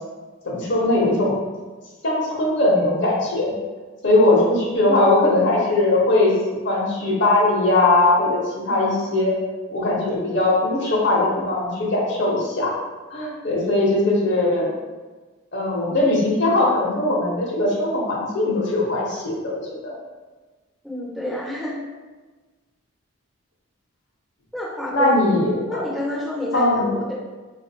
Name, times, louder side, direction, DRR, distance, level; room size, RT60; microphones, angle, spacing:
voice 1, 0.4-1.3 2.0-3.5 4.0-6.3 6.6-9.3 9.7-12.7 13.1-14.6 15.5-19.9 24.9-25.8 26.5-26.9, left 2 dB, 55° left, -3 dB, 0.9 m, -20 dB
voice 2, 20.8-21.8 24.5-25.1 25.7-26.6 26.9-27.1, left 1 dB, ahead, -7 dB, 0.5 m, -28 dB
4.6 x 2.5 x 2.7 m, 1.3 s
head